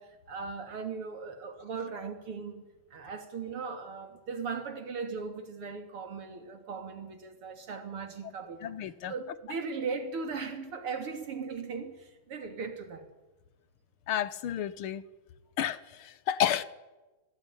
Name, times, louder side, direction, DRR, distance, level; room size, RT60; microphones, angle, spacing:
voice 1, 0.0-13.1, right 5 dB, 90° right, 3.8 m, -38 dB
voice 2, 8.6-9.1 14.1-15.0 15.6-15.8 16.3-16.6, left 10 dB, 75° left, 1.9 m, -30 dB
24.0 x 18.5 x 9.9 m
omnidirectional pair, 2.4 m